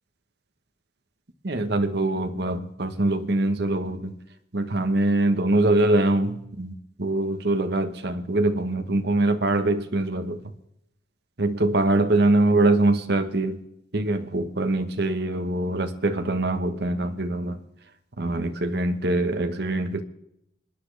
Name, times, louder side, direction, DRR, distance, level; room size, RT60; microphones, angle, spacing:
voice 1, 1.4-4.1 4.5-10.4 11.4-13.6 13.9-17.6 18.2-20.0, right 2 dB, 60° right, 1.1 m, -23 dB
25.5 x 10.5 x 3.3 m
head